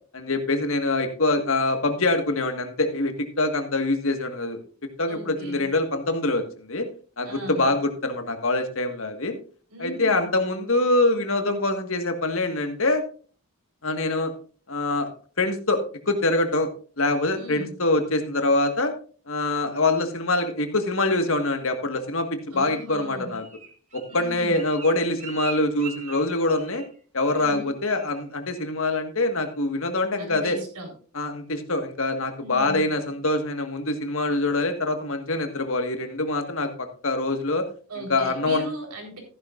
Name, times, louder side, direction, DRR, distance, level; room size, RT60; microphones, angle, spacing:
voice 1, 0.1-4.6 5.0-6.9 7.2-9.4 9.8-13.0 13.8-14.3 14.7-15.1 15.4-16.7 17.0-18.9 19.3-22.3 22.5-23.4 23.9-26.8 27.1-30.6 31.1-37.7 38.0-38.7, left 2 dB, 60° left, 6 dB, 1.6 m, -24 dB
voice 2, 5.1-5.7 7.2-7.7 9.7-10.3 17.3-17.7 22.5-23.4 24.1-24.6 27.4-27.7 30.2-30.9 32.4-32.9 37.9-39.2, equal, 90° right, 1 dB, 4.0 m, -37 dB
Bird, 22.9-27.0 27.2-27.6 27.9-28.2 28.6-29.0 29.4-29.5, right 5 dB, 30° right, 1.6 m, -42 dB
14.0 x 11.0 x 2.5 m, 0.40 s
head